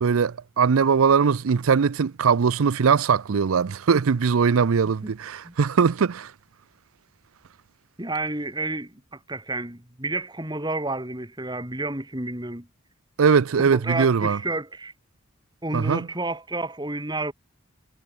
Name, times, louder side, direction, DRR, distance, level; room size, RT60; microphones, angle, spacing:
voice 1, 0.0-6.3 13.2-14.4 15.7-16.1, right 6 dB, 80° right, 0.5 m, -21 dB
voice 2, 8.0-12.6 13.7-14.9 15.6-17.3, right 2 dB, 20° right, 3.3 m, -30 dB
head